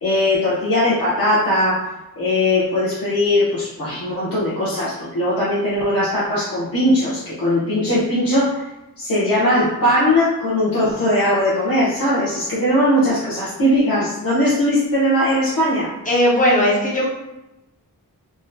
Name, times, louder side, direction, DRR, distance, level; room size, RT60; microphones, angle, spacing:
voice 1, 0.0-1.8 2.2-8.7 9.0-15.9, left 1 dB, 85° left, -10 dB, 0.9 m, -19 dB
voice 2, 16.1-17.1, equal, 25° left, -4 dB, 0.9 m, -17 dB
3.6 x 2.1 x 2.6 m, 0.94 s
wide cardioid pair, 70°, 35 cm